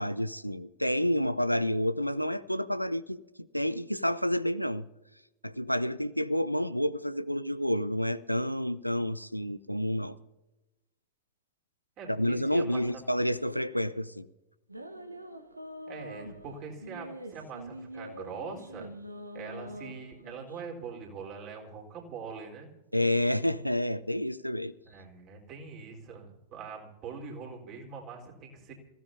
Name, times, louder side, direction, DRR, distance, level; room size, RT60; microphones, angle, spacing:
voice 1, 0.0-3.2 3.5-4.9 5.4-10.2 12.1-14.3 22.9-24.7, left 1 dB, 90° left, 0.6 m, -29 dB
voice 2, 12.0-12.8 15.9-18.9 19.3-22.7 24.8-28.7, right 5 dB, 40° right, 4.1 m, -43 dB
sound 1, 14.7-20.6, equal, 85° right, 1.1 m, -44 dB
27.5 x 16.0 x 2.7 m
figure-of-eight pair, 90°, 0 cm